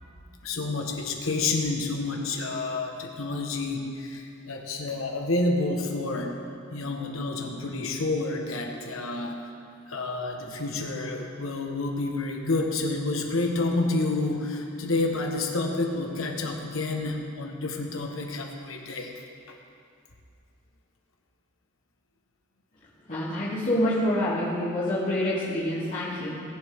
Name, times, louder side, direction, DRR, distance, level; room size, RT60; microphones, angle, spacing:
voice 1, 0.4-6.3 6.7-9.4 9.9-19.1 19.5-19.6, left 2 dB, 75° left, 2 dB, 1.3 m, -29 dB
voice 2, 23.1-26.4, left 1 dB, 40° left, -12 dB, 2.7 m, -27 dB
19.0 x 7.5 x 3.6 m, 2.5 s
head